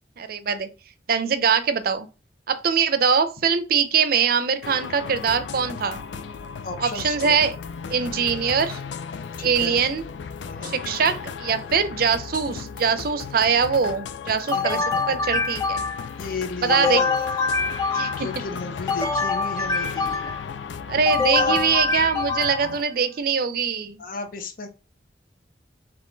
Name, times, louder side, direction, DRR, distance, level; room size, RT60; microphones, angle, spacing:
voice 1, 0.2-0.7 1.1-2.1 2.5-6.0 6.8-7.5 7.9-8.8 9.4-10.0 10.6-15.8 16.6-17.0 17.9-18.3 20.9-24.0, right 6 dB, 55° right, 0.5 m, -22 dB
sound 1, 4.6-22.8, left 6 dB, 90° left, 0.4 m, -36 dB
voice 2, 6.6-7.4 8.0-8.1 9.4-9.8 10.4-10.7 14.5-14.8 16.2-17.3 17.9-20.3 21.3-21.6 24.0-24.7, left 3 dB, 50° left, 0.8 m, -34 dB
sound 2, 14.5-16.2 16.7-18.4 18.9-20.5 21.1-22.8, left 4 dB, 20° left, 0.5 m, -25 dB
3.7 x 2.9 x 3.9 m
head